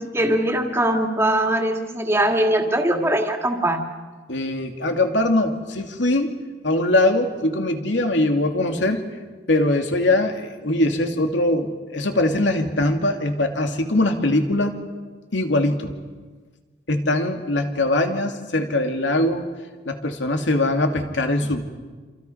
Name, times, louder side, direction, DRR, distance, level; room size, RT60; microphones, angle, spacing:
voice 1, 0.0-3.8, right 1 dB, 15° right, 3 dB, 2.3 m, -21 dB
voice 2, 4.3-6.3 6.6-9.0 9.5-14.7 15.3-15.9 16.9-19.5 19.8-21.6, left 1 dB, 85° left, 4 dB, 2.5 m, -21 dB
28.0 x 27.5 x 5.8 m, 1.4 s
head